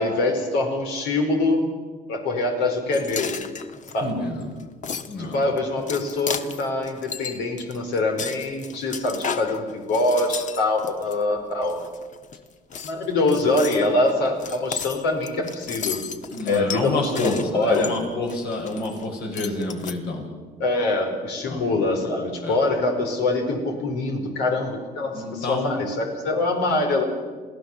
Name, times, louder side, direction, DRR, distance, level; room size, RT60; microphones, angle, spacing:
voice 1, 0.0-1.7 2.1-3.4 3.9-4.1 5.2-11.8 12.8-16.0 16.5-18.0 20.6-27.0, left 2 dB, 90° left, 3 dB, 4.7 m, -24 dB
sound 1, 2.9-11.2 11.6-12.4 12.7-19.0 19.3-19.9, left 6 dB, 45° left, 1.4 m, -34 dB
voice 2, 4.0-4.5 5.1-5.4 16.3-20.3 21.4-21.6 22.4-22.6 25.1-25.8, left 2 dB, 70° left, 2 dB, 6.4 m, -28 dB
28.0 x 17.0 x 7.4 m, 1.5 s
cardioid pair, 110°, 17 cm